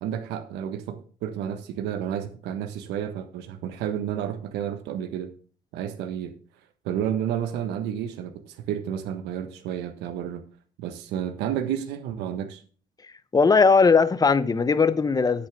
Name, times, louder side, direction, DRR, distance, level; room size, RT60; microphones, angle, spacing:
voice 1, 0.0-5.3 5.7-6.3 6.8-10.4 10.8-12.6, right 9 dB, 90° right, 1.4 m, -31 dB
voice 2, 13.3-15.5, left 4 dB, 20° left, 0.9 m, -19 dB
10.5 x 9.1 x 3.6 m
cardioid pair, 110°, 17 cm